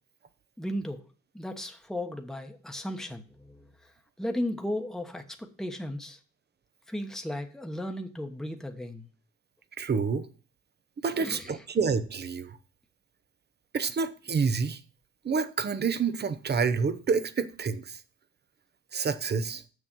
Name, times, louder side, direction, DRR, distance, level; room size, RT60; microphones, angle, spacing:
voice 1, 0.6-1.0 1.3-3.6 4.2-6.2 6.9-9.1 11.2-11.6, left 1 dB, ahead, 1.2 m, -35 dB
voice 2, 9.8-10.3 11.0-12.5 13.7-14.8 15.2-18.0 18.9-19.6, right 5 dB, 35° right, 0.9 m, -28 dB
6.9 x 6.5 x 6.1 m
cardioid pair, 90°, 30 cm